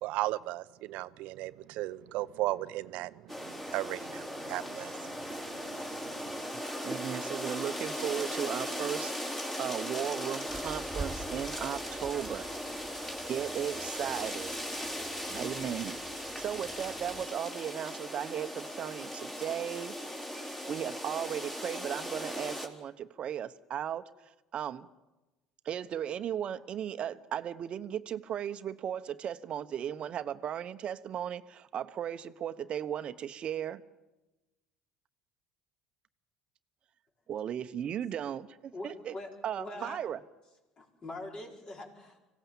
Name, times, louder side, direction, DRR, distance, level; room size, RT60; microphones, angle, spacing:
voice 1, 0.0-6.5, right 17 dB, 65° right, 15 dB, 0.7 m, -37 dB
sound 1, 3.3-22.7, equal, 15° left, 3.6 m, -38 dB
voice 2, 6.8-12.5 13.3-14.5 15.3-19.9 20.7-24.1 24.5-24.9 25.6-33.8 37.3-39.1 39.4-40.2, right 9 dB, 50° right, 12 dB, 1.0 m, -36 dB
Rain, 10.5-17.3, right 3 dB, 15° right, 2.2 m, -47 dB
voice 3, 38.7-39.3 39.6-40.0 40.8-42.2, left 2 dB, 35° left, 0 dB, 4.9 m, -43 dB
25.5 x 16.5 x 7.3 m, 1.1 s
hypercardioid pair, 75°, 2 cm